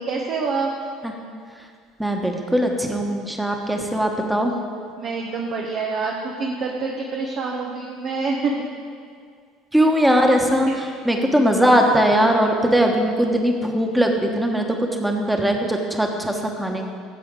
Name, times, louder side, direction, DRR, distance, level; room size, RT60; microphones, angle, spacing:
voice 1, 0.1-0.7 5.0-8.5 10.7-10.8, right 4 dB, 50° right, 0 dB, 1.1 m, -26 dB
voice 2, 2.0-4.5 9.7-10.7 11.0-14.7 15.0-16.8, equal, 5° right, 2 dB, 1.4 m, -20 dB
15.0 x 7.6 x 3.9 m, 2.2 s
figure-of-eight pair, 65°, 0 cm